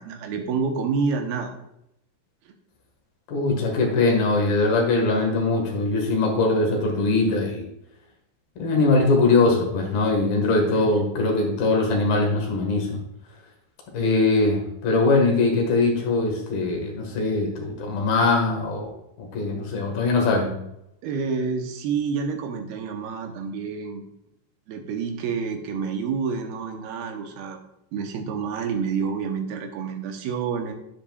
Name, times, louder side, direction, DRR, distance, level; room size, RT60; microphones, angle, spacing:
voice 1, 0.0-1.5 2.5-2.6 10.7-11.1 21.0-24.0 24.7-27.6 27.9-30.7, right 5 dB, 85° right, 4 dB, 2.9 m, -28 dB
voice 2, 3.3-7.6 8.6-13.0 13.9-18.9 19.2-20.5, left 3 dB, 75° left, 1 dB, 3.6 m, -21 dB
10.0 x 9.8 x 2.4 m, 0.80 s
omnidirectional pair, 4.3 m